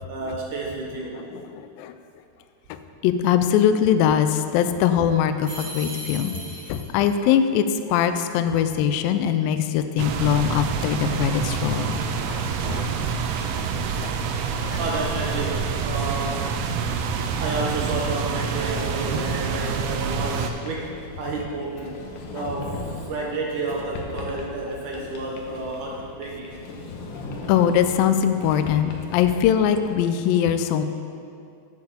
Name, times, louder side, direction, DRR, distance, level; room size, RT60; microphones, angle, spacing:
voice 1, 0.1-1.2 11.0-11.2 14.8-16.6 17.4-22.0 22.3-26.5, right 2 dB, 70° right, -2 dB, 2.0 m, -30 dB
voice 2, 1.2-1.9 2.7-2.8 3.0-6.3 6.7-13.0 13.9-14.8 18.7-18.8 27.5-30.8, left 9 dB, 85° left, 9 dB, 2.0 m, -22 dB
sound 1, 5.4-7.1, right 2 dB, 30° right, 3.7 m, -37 dB
sound 2, 10.0-20.5, right 6 dB, 90° right, 2.7 m, -27 dB
Sliding door, 20.3-29.9, left 3 dB, 65° left, 2.1 m, -38 dB
8.7 x 8.1 x 7.0 m, 2.4 s
omnidirectional pair, 4.6 m